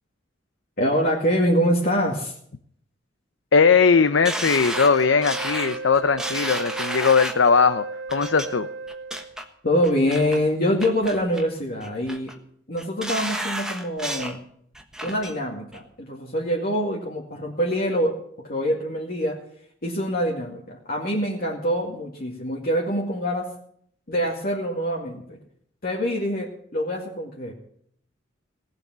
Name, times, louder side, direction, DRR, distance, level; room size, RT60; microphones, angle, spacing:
voice 1, 0.8-2.4 9.6-12.3 12.7-14.4 15.0-19.4 19.8-23.5 24.1-25.4 25.8-27.5, equal, 50° left, -2 dB, 2.3 m, -25 dB
voice 2, 3.5-8.7, left 5 dB, 85° left, 11 dB, 0.7 m, -19 dB
sound 1, 4.3-7.5 8.1-8.5 8.9-9.4 9.8-10.4 10.8-11.5 11.8-12.3 12.8-14.4 14.7-15.3 15.7-15.8, right 1 dB, 5° right, 1.3 m, -31 dB
Wind instrument woodwind instrument, 4.7-9.5, right 3 dB, 65° right, 0.5 m, -35 dB
18.0 x 7.0 x 9.4 m, 0.65 s
head